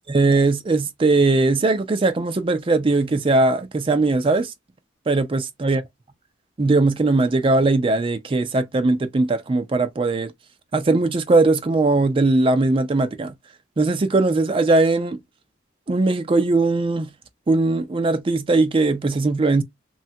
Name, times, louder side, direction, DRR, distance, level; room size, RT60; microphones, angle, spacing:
voice 1, 0.1-4.5 5.1-5.8 6.6-10.3 10.7-13.3 13.8-15.2 15.9-17.1 17.5-19.6, right 3 dB, 30° right, 0.4 m, -19 dB
3.2 x 2.2 x 2.6 m
head